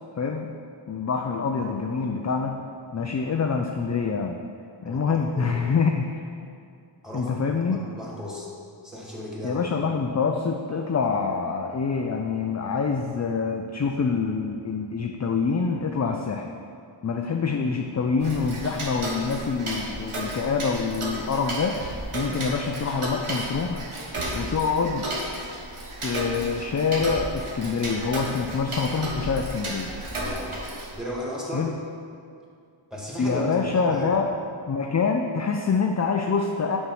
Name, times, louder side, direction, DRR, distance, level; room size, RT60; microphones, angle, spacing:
voice 1, 0.2-0.5 0.9-2.6 2.9-4.4 4.8-6.1 7.1-7.8 9.4-16.5 17.0-21.9 22.1-23.8 24.3-25.1 26.0-29.9 31.5-31.7 33.2-34.3 34.7-36.8, left 5 dB, 35° left, 3 dB, 0.4 m, -26 dB
voice 2, 4.9-5.5 7.0-7.4 7.6-8.5 8.8-9.6 30.1-30.5 30.9-31.7 32.9-34.2, equal, ahead, -5 dB, 1.9 m, -35 dB
Tick-tock, 18.2-31.0, right 1 dB, 80° right, 1.2 m, -33 dB
6.7 x 5.5 x 4.8 m, 2.3 s
wide cardioid pair, 50°, 49 cm